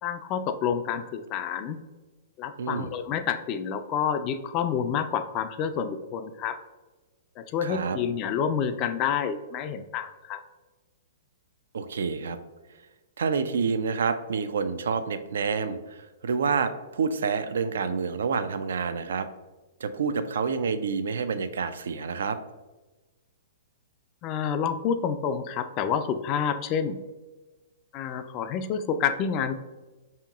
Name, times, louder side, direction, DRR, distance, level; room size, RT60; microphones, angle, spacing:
voice 1, 0.0-1.8 2.4-6.6 7.4-10.4 24.2-27.0 27.9-29.6, left 7 dB, 35° left, 9 dB, 0.3 m, -28 dB
voice 2, 2.6-2.9 7.6-8.0 11.7-12.4 13.2-19.3 19.8-22.4, right 5 dB, 70° right, 10 dB, 0.3 m, -28 dB
5.1 x 2.8 x 2.4 m, 1.2 s
hypercardioid pair, 120°, 0 cm